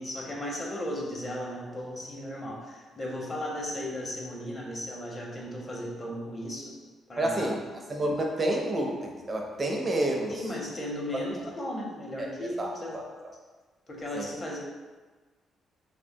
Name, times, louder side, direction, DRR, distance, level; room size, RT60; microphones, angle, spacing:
voice 1, 0.0-6.7 7.1-7.6 10.3-13.0 13.9-14.6, left 1 dB, 30° left, -2 dB, 0.7 m, -36 dB
voice 2, 7.2-7.6 7.9-10.3 12.2-12.3 12.6-13.1 14.1-14.3, right 1 dB, 30° right, 1 dB, 0.5 m, -29 dB
3.0 x 2.1 x 2.6 m, 1.3 s
cardioid pair, 90°, 0 cm